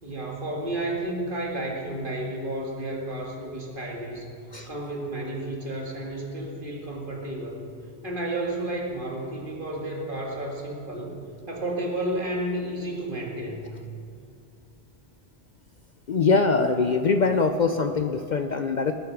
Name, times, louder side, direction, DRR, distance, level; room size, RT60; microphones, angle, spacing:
voice 1, 0.0-4.4 4.7-7.7 8.0-11.2 11.5-13.8, right 1 dB, 50° right, -1 dB, 2.3 m, -32 dB
voice 2, 16.1-18.9, left 4 dB, 50° left, 7 dB, 0.6 m, -23 dB
19.5 x 10.0 x 4.7 m, 2.5 s
omnidirectional pair, 1.1 m